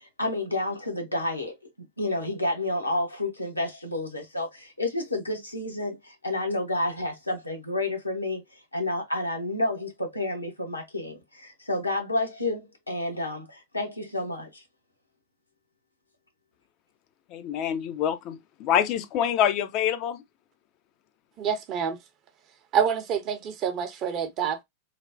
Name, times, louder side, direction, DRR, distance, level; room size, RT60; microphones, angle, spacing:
voice 1, 0.0-14.6, left 2 dB, 85° left, 0.9 m, -30 dB
voice 2, 17.3-20.2, left 9 dB, 40° left, 0.4 m, -26 dB
voice 3, 21.4-22.0 22.7-24.6, right 7 dB, 35° right, 0.7 m, -27 dB
3.2 x 2.1 x 2.4 m
figure-of-eight pair, 90°, 0 cm